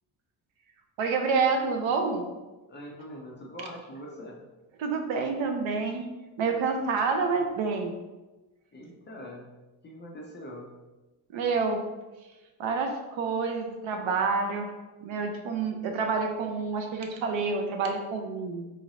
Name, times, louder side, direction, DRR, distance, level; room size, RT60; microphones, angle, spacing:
voice 1, 1.0-2.3 4.8-6.1 6.4-7.9 11.3-11.8 12.6-14.7 15.0-18.7, right 4 dB, 75° right, 5 dB, 0.7 m, -28 dB
voice 2, 2.7-4.4 8.7-9.5 9.8-10.7, equal, 25° left, -2 dB, 0.4 m, -43 dB
3.8 x 3.1 x 2.6 m, 1.1 s
cardioid pair, 155°, 47 cm